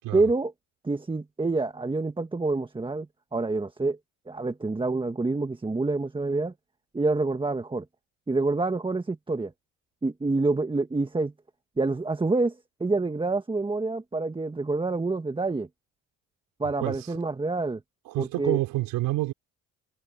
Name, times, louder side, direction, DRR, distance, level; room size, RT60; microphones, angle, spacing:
voice 1, 0.1-0.5 0.8-4.0 4.3-6.5 6.9-7.8 8.3-9.5 10.0-11.3 11.8-15.7 16.6-17.8 18.2-18.6, right 3 dB, 15° right, 1.5 m, -27 dB
voice 2, 16.8-17.2 18.1-19.3, right 17 dB, 85° right, 4.2 m, -28 dB
cardioid pair, 90°, 33 cm